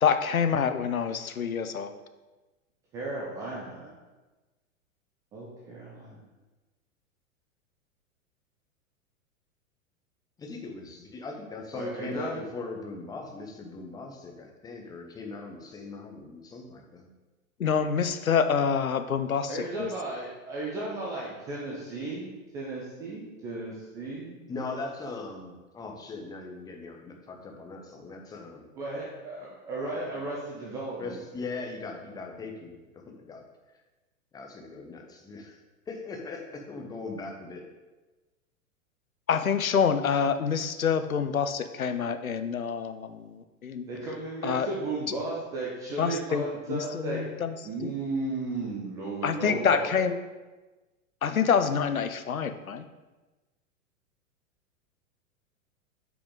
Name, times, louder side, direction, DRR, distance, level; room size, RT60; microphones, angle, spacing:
voice 1, 0.0-2.0 17.6-19.9 39.3-43.9 44.4-44.7 45.1-45.2 46.0-46.4 46.7-47.6 47.8-47.9 49.2-50.2 51.2-52.8, left 7 dB, 80° left, 10 dB, 0.6 m, -27 dB
voice 2, 2.9-3.9 5.3-6.2 11.7-12.4 19.5-24.4 28.8-31.2 43.9-47.2 47.6-50.0, right 2 dB, 10° right, -4 dB, 0.3 m, -35 dB
voice 3, 10.4-17.1 24.5-28.7 29.8-30.2 31.0-33.4 34.3-35.6 35.9-37.6, left 3 dB, 10° left, 2 dB, 0.7 m, -40 dB
8.1 x 5.0 x 3.7 m, 1.2 s
figure-of-eight pair, 100°, 41 cm